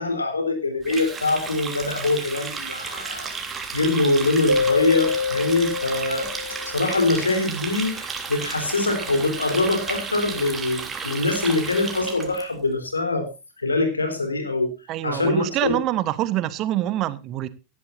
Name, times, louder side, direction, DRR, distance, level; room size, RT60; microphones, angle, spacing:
voice 1, 0.0-3.4 3.7-6.3 6.6-13.3 13.6-14.7 15.0-15.8, left 2 dB, 75° left, 3.9 m, -23 dB
Water tap faucet, 0.8-12.4, right 5 dB, 15° right, 3.3 m, -33 dB
Keyboard (musical), 4.5-7.2, left 4 dB, 80° right, 3.4 m, -26 dB
voice 2, 14.9-17.5, right 14 dB, 35° right, 1.2 m, -25 dB
18.0 x 12.5 x 2.6 m
figure-of-eight pair, 90°, 0 cm